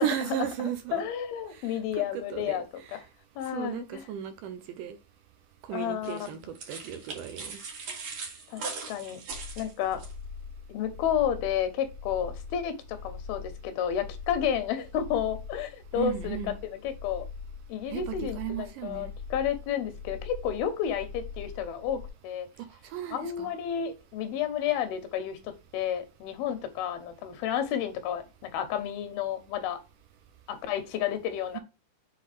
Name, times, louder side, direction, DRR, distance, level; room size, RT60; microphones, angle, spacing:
voice 1, 0.0-1.0 1.5-3.0 3.5-5.0 5.7-7.6 16.0-16.6 17.9-19.1 22.6-23.5 31.5-31.6, right 10 dB, 80° right, 2.1 m, -35 dB
voice 2, 0.9-2.6 2.9-3.0 3.4-4.0 5.7-6.3 8.5-9.2 9.6-10.0 10.7-16.4 16.8-17.3 17.7-22.5 23.1-29.8 30.5-31.6, left 9 dB, 90° left, 2.8 m, -31 dB
sound 1, 6.0-10.1, right 4 dB, 55° right, 2.8 m, -40 dB
sound 2, 9.3-22.1, left 5 dB, 55° left, 1.7 m, -42 dB
7.6 x 3.9 x 3.3 m
omnidirectional pair, 4.3 m